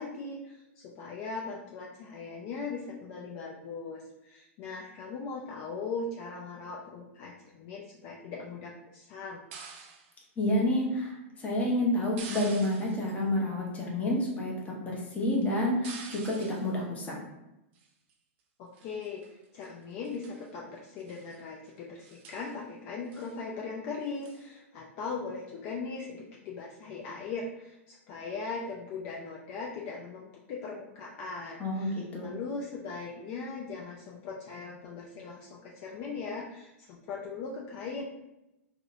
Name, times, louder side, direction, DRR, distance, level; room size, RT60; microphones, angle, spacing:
voice 1, 0.0-9.4 18.6-38.0, left 4 dB, 45° left, -3 dB, 0.4 m, -39 dB
sound 1, 9.5-10.1 12.2-13.2 15.8-16.7 17.7-18.1 18.7-19.3 19.6-19.7 20.0-20.4 21.0-21.4 21.7-21.8 22.0-22.5 23.1-23.4 24.2-24.5, right 5 dB, 55° right, 0.4 m, -46 dB
voice 2, 10.4-17.2 31.6-32.3, left 1 dB, 20° left, -2 dB, 0.7 m, -29 dB
2.6 x 2.1 x 2.5 m, 0.92 s
hypercardioid pair, 110°, 7 cm